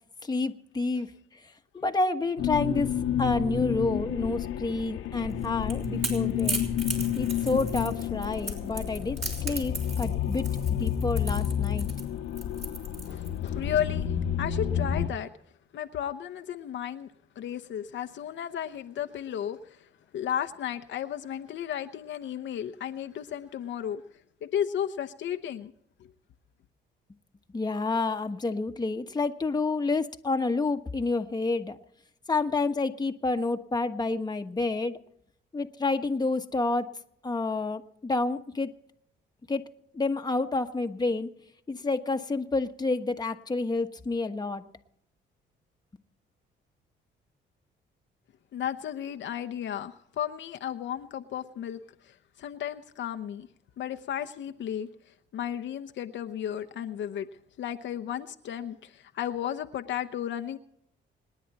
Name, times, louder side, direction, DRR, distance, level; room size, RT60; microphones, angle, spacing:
voice 1, 0.2-1.1 1.7-2.9 3.2-6.6 7.2-11.9 27.5-31.8 32.3-35.0 35.5-36.9 37.2-38.7 39.5-39.7 39.9-41.3 41.7-44.6, left 3 dB, 20° left, 5 dB, 1.3 m, -29 dB
sound 1, 2.4-15.1, left 9 dB, 90° left, 1.3 m, -30 dB
Crackle / Crack, 5.3-13.5, right 2 dB, 35° right, 4.6 m, -37 dB
voice 2, 13.0-14.1 14.4-15.3 15.7-17.1 17.4-19.6 20.1-24.0 24.4-25.7 48.5-51.8 52.0-53.5 53.8-54.9 55.3-57.3 57.6-60.6, left 9 dB, 70° left, 7 dB, 0.9 m, -33 dB
26.5 x 10.0 x 4.1 m, 0.71 s
cardioid pair, 90°, 20 cm